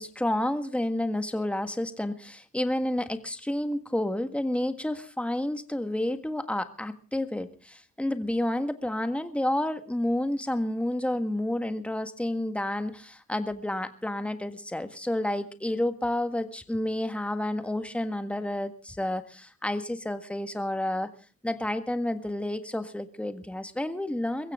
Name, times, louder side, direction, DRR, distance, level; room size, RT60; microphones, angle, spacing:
voice 1, 0.0-21.1 21.4-24.5, left 1 dB, 5° left, 9 dB, 1.7 m, -30 dB
22.0 x 15.5 x 3.7 m, 0.35 s
cardioid pair, 90°, 30 cm